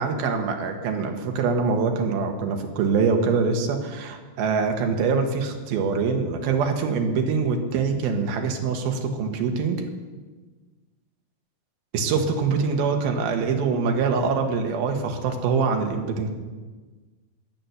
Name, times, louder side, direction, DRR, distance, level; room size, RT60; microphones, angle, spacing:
voice 1, 0.0-9.8 11.9-16.3, right 5 dB, 80° right, 4 dB, 3.2 m, -24 dB
13.5 x 9.5 x 6.9 m, 1.3 s
omnidirectional pair, 4.3 m